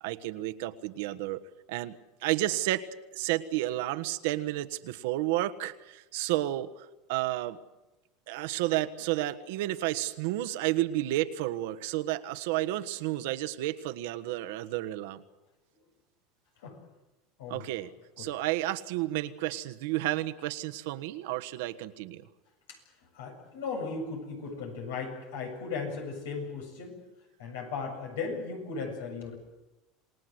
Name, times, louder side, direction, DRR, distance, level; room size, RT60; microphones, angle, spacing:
voice 1, 0.0-1.4 1.7-2.8 3.1-7.6 8.3-15.2 17.5-17.9 18.2-22.3, right 15 dB, 75° right, 10 dB, 1.4 m, -31 dB
voice 2, 17.4-17.8 18.2-18.3 22.7-27.0 27.4-29.4, left 4 dB, 90° left, 3 dB, 7.5 m, -37 dB
28.0 x 18.5 x 7.9 m, 1.0 s
supercardioid pair, 120°, 0 cm